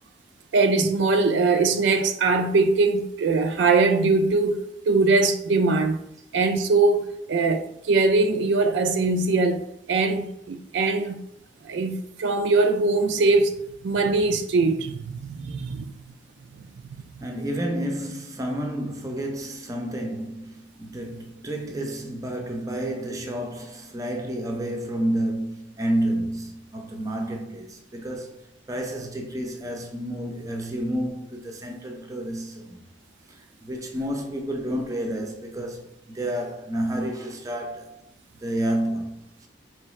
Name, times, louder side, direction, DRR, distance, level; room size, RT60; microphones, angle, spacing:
voice 1, 0.5-6.0 6.3-7.0 7.3-9.6 9.9-11.2 11.6-13.6 13.8-15.9 16.9-17.3, right 3 dB, 70° right, 0.4 m, -22 dB
voice 2, 17.2-32.8 33.3-35.9 36.1-38.0 38.4-39.2, right 1 dB, 20° right, 0.5 m, -30 dB
4.6 x 3.2 x 3.1 m
head